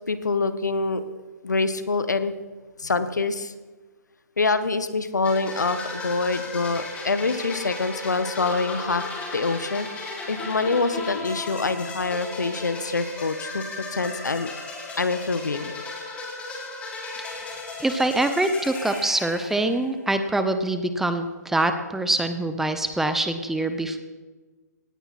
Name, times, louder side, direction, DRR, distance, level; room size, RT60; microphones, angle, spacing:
voice 1, 0.1-1.0 1.4-2.4 2.8-3.5 4.4-9.0 9.3-13.6 13.9-14.5 15.0-15.7, left 3 dB, 75° left, 12 dB, 1.3 m, -25 dB
sound 1, 5.2-20.0, left 3 dB, 15° left, 3.4 m, -35 dB
voice 2, 17.8-24.0, right 2 dB, 5° right, 8 dB, 0.9 m, -24 dB
18.0 x 16.5 x 4.3 m, 1.3 s
figure-of-eight pair, 130°, 10 cm